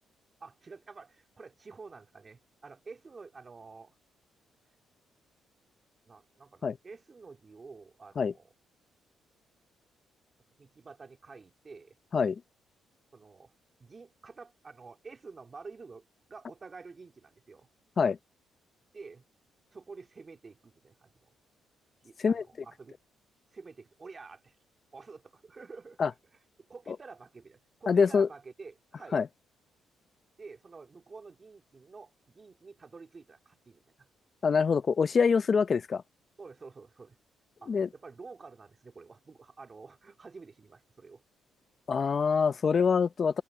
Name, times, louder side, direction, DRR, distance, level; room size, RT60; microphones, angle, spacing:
voice 1, 0.4-4.0 6.1-8.5 10.6-12.0 13.1-13.5 13.8-17.7 18.9-19.2 19.7-21.3 22.0-23.0 23.5-24.5 24.9-26.1 26.7-29.2 30.4-34.1 36.4-37.2 37.6-41.2, right 4 dB, 35° right, 2.4 m, -49 dB
voice 2, 27.9-28.3 29.1-29.3 34.4-36.0 37.7-37.9 41.9-43.4, left 5 dB, 45° left, 0.7 m, -25 dB
cardioid pair, 90°, 0 cm